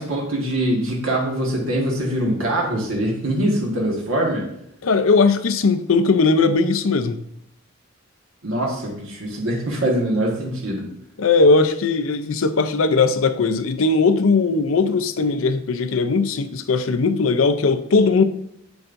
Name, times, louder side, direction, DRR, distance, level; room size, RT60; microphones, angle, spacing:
voice 1, 0.0-4.5 8.4-10.8, right 1 dB, 85° right, 1.5 m, -23 dB
voice 2, 4.8-7.2 11.2-18.2, left 4 dB, 75° left, 0.5 m, -18 dB
7.5 x 7.1 x 2.6 m
head